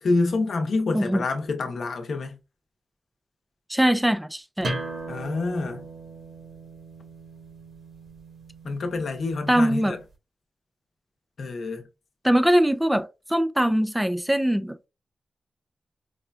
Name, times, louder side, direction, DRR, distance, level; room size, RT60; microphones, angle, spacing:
voice 1, 0.0-2.4 5.1-5.9 8.6-10.0 11.4-11.8, left 3 dB, 80° left, 0.7 m, -27 dB
voice 2, 3.7-4.7 9.5-10.0 12.2-14.9, equal, 5° right, 0.3 m, -22 dB
sound 1, 4.6-10.0, right 2 dB, 80° right, 1.9 m, -38 dB
4.8 x 2.2 x 2.4 m
wide cardioid pair, 120°, 0 cm